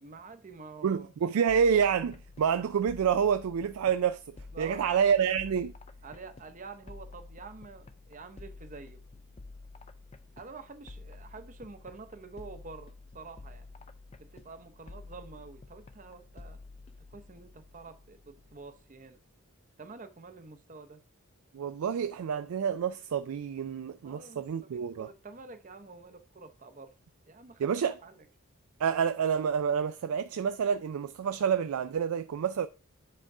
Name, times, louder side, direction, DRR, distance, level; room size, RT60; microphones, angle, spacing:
voice 1, 0.0-1.1 4.5-5.0 6.0-9.0 10.4-13.7 14.2-16.6 17.0-19.2 19.8-21.0 24.0-26.9 27.3-28.2, right 4 dB, 35° right, 0.7 m, -48 dB
voice 2, 0.8-4.2 4.6-5.7 21.5-25.1 27.6-27.9 28.8-32.7, right 7 dB, 85° right, 0.4 m, -28 dB
sound 1, 1.5-19.1, left 3 dB, 30° left, 0.4 m, -50 dB
7.7 x 3.6 x 4.8 m
head